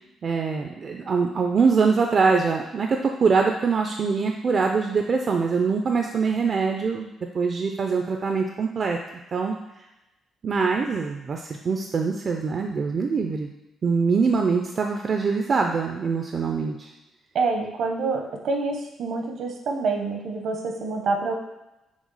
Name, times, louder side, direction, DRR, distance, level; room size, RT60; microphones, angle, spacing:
voice 1, 0.2-9.0 9.3-9.5 10.4-13.5 13.8-16.9, right 5 dB, 45° right, 3 dB, 0.4 m, -23 dB
voice 2, 17.3-21.3, right 3 dB, 70° right, 2 dB, 0.8 m, -27 dB
5.9 x 2.0 x 4.0 m, 0.96 s
cardioid pair, 90°, 0 cm